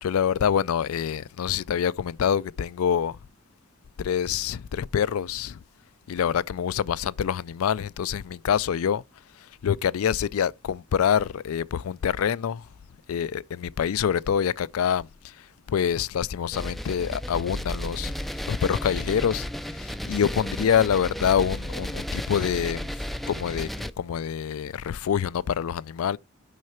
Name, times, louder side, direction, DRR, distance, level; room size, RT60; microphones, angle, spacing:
voice 1, 0.0-3.2 4.0-5.6 6.1-9.0 9.3-12.7 13.1-26.2, left 8 dB, 90° left, 0.4 m, -26 dB
sound 1, 16.5-23.9, equal, ahead, 0.3 m, -33 dB
6.3 x 5.7 x 4.4 m
head